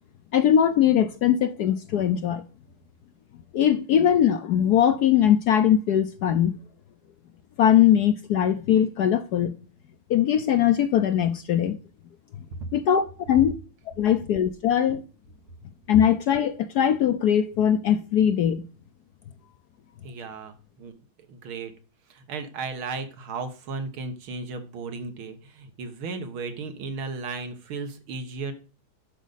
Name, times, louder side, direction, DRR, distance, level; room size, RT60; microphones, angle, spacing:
voice 1, 0.3-2.4 3.5-6.6 7.6-9.6 10.1-11.8 12.7-13.5 14.0-15.0 15.9-18.7, left 9 dB, 70° left, 1.0 m, -21 dB
voice 2, 20.0-20.9 21.3-21.7 22.1-28.5, right 4 dB, 85° right, 2.2 m, -35 dB
11.5 x 5.1 x 4.0 m
omnidirectional pair, 2.2 m